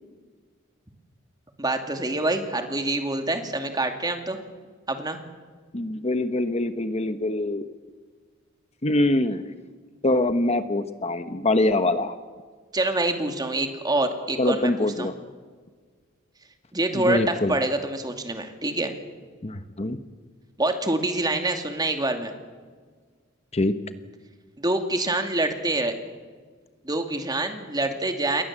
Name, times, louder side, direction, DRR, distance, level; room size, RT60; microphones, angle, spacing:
voice 1, 1.6-4.4 4.9-5.2 12.7-15.1 16.7-18.9 20.6-22.3 24.6-25.9 26.8-28.4, right 2 dB, 20° right, 5 dB, 2.5 m, -26 dB
voice 2, 5.7-7.6 8.8-9.4 10.0-12.1 14.4-15.1 16.9-17.6 19.4-20.0 23.5-23.8, left 2 dB, 30° left, 10 dB, 1.0 m, -24 dB
28.5 x 22.0 x 7.5 m, 1.5 s
head